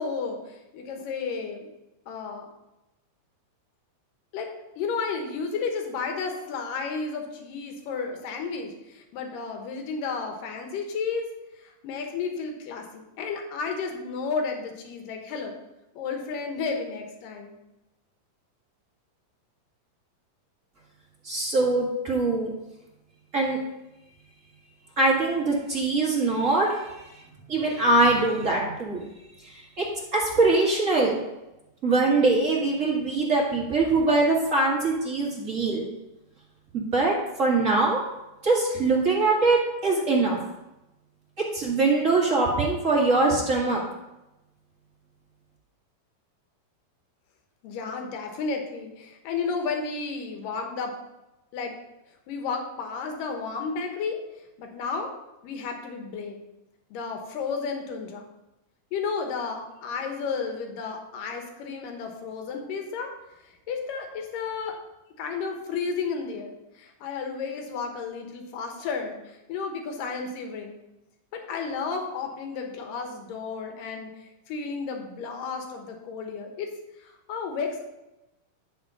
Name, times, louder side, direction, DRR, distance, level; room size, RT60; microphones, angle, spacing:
voice 1, 0.0-1.7 2.1-2.5 4.3-11.3 11.6-15.6 15.9-17.6 47.6-50.9 51.5-51.8 52.3-54.2 54.6-55.1 55.4-56.4 56.9-58.3 58.9-63.1 63.4-64.8 65.2-70.8 71.3-76.7 77.0-77.9, left 5 dB, 80° left, 3 dB, 2.8 m, -32 dB
voice 2, 21.2-22.5 23.3-23.6 25.0-27.2 27.5-29.0 29.4-29.8 30.1-31.2 31.8-35.8 36.7-38.0 38.4-40.4 41.5-43.8, right 3 dB, 35° right, -4 dB, 1.4 m, -23 dB
11.0 x 4.3 x 5.4 m, 0.96 s
omnidirectional pair, 3.9 m